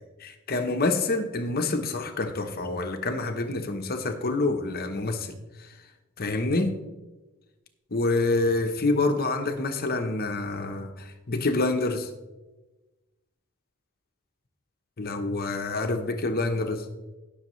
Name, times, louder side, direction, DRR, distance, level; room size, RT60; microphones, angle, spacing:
voice 1, 0.2-5.3 6.2-6.8 7.9-12.1 15.0-16.9, left 2 dB, 45° left, 6 dB, 0.9 m, -27 dB
18.0 x 6.4 x 3.1 m, 1.1 s
head